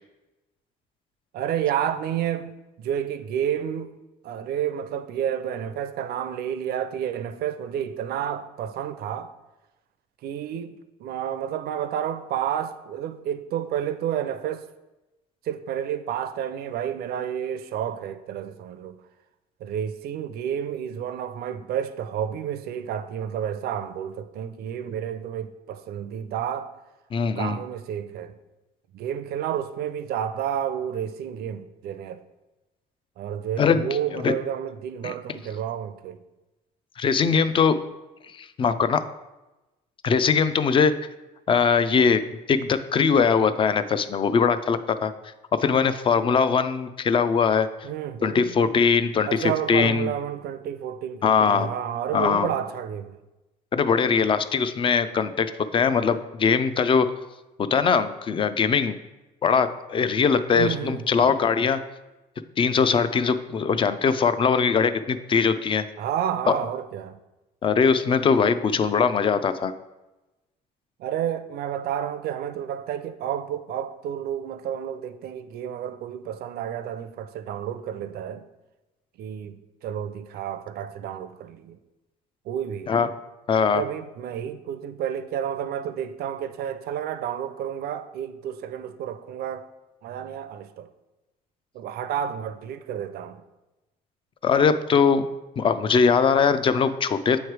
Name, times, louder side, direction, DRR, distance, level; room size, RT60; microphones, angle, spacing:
voice 1, 1.3-3.9 4.2-9.3 10.2-14.6 15.5-19.0 19.6-26.7 27.4-28.3 28.9-32.2 33.2-36.2 47.8-48.5 49.3-53.2 60.5-61.3 66.0-67.2 71.0-78.4 79.2-81.8 82.5-82.9 83.7-89.7 90.0-90.9 91.7-93.4, right 9 dB, 65° right, 0.5 m, -30 dB
voice 2, 27.1-27.6 33.6-34.3 35.0-35.1 37.0-37.8 38.4-39.0 40.0-41.0 41.5-45.1 45.6-47.7 48.2-50.1 51.2-51.7 52.1-52.5 53.7-57.1 57.6-58.9 59.4-61.8 62.6-65.9 66.5-66.6 67.6-69.7 82.9-83.1 83.5-83.8 94.4-95.3 95.6-97.4, left 6 dB, 30° left, 0.4 m, -21 dB
8.0 x 3.2 x 4.6 m
cardioid pair, 110°, 17 cm